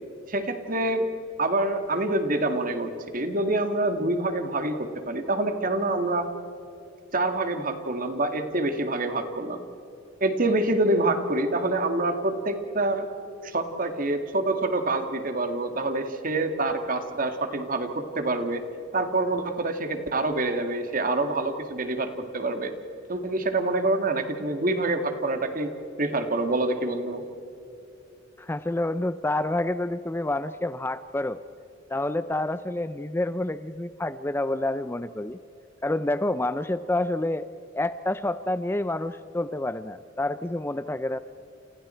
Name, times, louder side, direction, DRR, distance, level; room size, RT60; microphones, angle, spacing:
voice 1, 0.3-1.1 1.4-6.3 7.1-9.6 10.2-13.1 13.4-18.6 18.9-22.7 23.1-25.7 26.0-27.2, right 2 dB, 45° right, 7 dB, 2.1 m, -26 dB
voice 2, 28.4-31.4 31.9-35.4 35.8-37.5 37.7-41.2, left 1 dB, 10° left, 13 dB, 0.5 m, -28 dB
29.5 x 29.0 x 4.5 m, 2.9 s
head